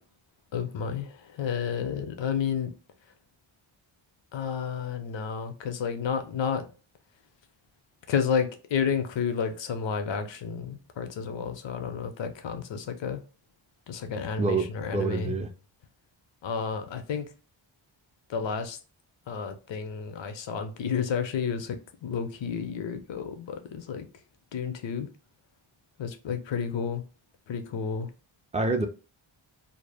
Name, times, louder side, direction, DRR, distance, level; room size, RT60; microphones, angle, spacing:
voice 1, 0.5-2.7 4.3-6.7 8.1-13.2 13.9-15.4 16.4-17.3 18.3-18.8 19.3-24.1 24.5-25.1 26.0-27.0 27.5-28.1, left 6 dB, 65° left, 0.6 m, -31 dB
voice 2, 14.4-15.5 28.5-28.9, right 3 dB, 15° right, 0.4 m, -27 dB
2.0 x 2.0 x 3.3 m
cardioid pair, 55°, 48 cm